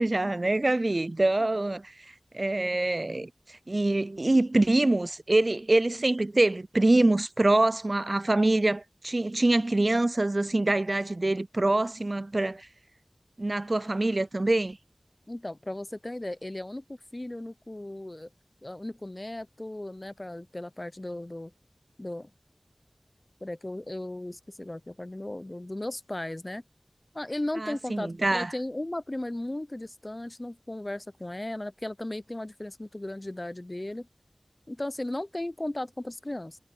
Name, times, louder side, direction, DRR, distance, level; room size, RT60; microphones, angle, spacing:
voice 1, 0.0-1.9 2.3-12.7 13.4-14.8 27.6-28.5, right 2 dB, 55° right, 0.3 m, -25 dB
voice 2, 15.3-18.3 18.6-21.5 22.0-22.3 23.4-26.6 27.1-34.1 34.7-36.6, left 1 dB, 35° left, 0.5 m, -36 dB
wide cardioid pair, 40°, 0 cm